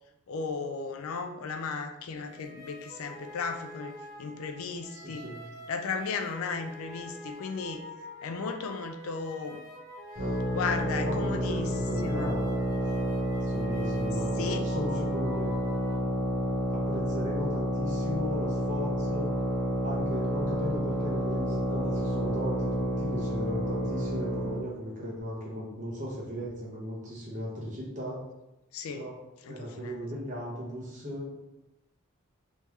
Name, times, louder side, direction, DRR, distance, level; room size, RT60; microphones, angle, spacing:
voice 1, 0.3-5.3 5.7-7.8 8.2-9.6 10.5-12.4 14.4-14.7 28.7-29.0 29.4-30.0, left 4 dB, 75° left, 7 dB, 0.4 m, -35 dB
sound 1, 2.2-16.0, equal, 15° right, 0.4 m, -46 dB
voice 2, 4.9-5.4 10.8-12.5 13.4-15.5 16.7-19.3 19.8-28.2 28.9-29.1 29.5-31.3, equal, 35° right, -5 dB, 1.1 m, -37 dB
sound 2, 10.2-24.7, equal, 50° right, 1.5 m, -30 dB
3.5 x 3.1 x 3.1 m, 0.93 s
head